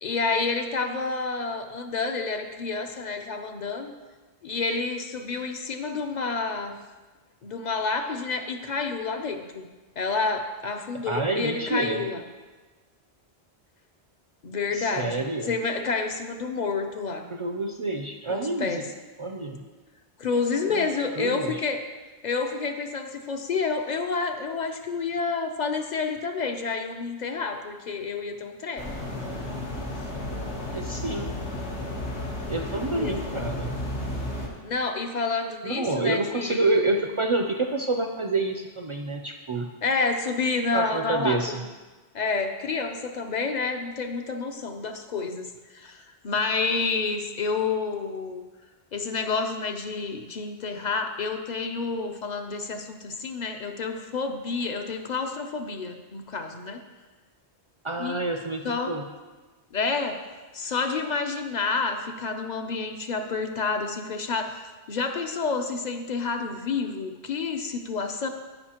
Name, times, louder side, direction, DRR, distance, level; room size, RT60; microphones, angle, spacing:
voice 1, 0.0-3.9 4.4-6.7 7.4-9.7 10.0-12.2 14.4-17.3 18.3-18.9 20.2-21.8 22.2-28.9 33.0-33.5 34.6-36.7 39.8-41.7 42.1-48.4 48.9-56.8 58.0-58.2 58.6-59.0 59.7-60.2 60.5-68.3, left 4 dB, 50° left, 6 dB, 0.6 m, -29 dB
voice 2, 11.1-12.0 14.7-15.5 17.3-18.8 19.2-19.6 20.7-20.9 21.2-21.6 30.7-31.3 32.4-33.7 35.6-39.7 40.7-41.6 57.8-59.1, right 2 dB, 55° right, 3 dB, 0.3 m, -28 dB
sound 1, 28.8-34.5, left 1 dB, 85° left, 1.5 m, -33 dB
13.5 x 5.5 x 2.9 m, 1.3 s
omnidirectional pair, 1.1 m